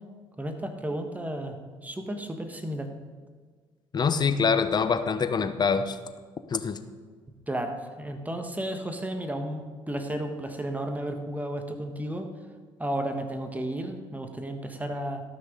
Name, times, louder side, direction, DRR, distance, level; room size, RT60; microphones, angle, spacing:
voice 1, 0.4-2.9 7.5-12.3 12.8-15.2, right 1 dB, 15° right, 6 dB, 1.4 m, -33 dB
voice 2, 3.9-6.0 6.5-6.8, left 5 dB, 40° left, 10 dB, 0.9 m, -25 dB
13.0 x 6.1 x 5.1 m, 1.5 s
supercardioid pair, 65°, 11 cm